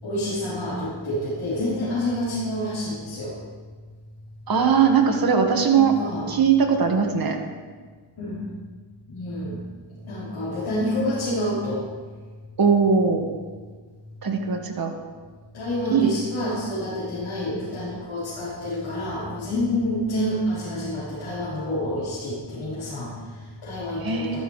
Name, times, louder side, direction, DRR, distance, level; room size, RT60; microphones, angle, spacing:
voice 1, 0.0-3.4 5.7-6.3 8.2-8.4 9.1-9.6 10.0-11.9 15.5-24.4, left 1 dB, 65° left, -11 dB, 4.5 m, -28 dB
voice 2, 4.5-5.9 6.3-7.4 12.6-13.3 14.2-14.9 15.9-16.1 24.0-24.4, right 6 dB, 45° right, 2 dB, 1.8 m, -20 dB
14.5 x 12.5 x 3.3 m, 1.5 s
cardioid pair, 115°, 50 cm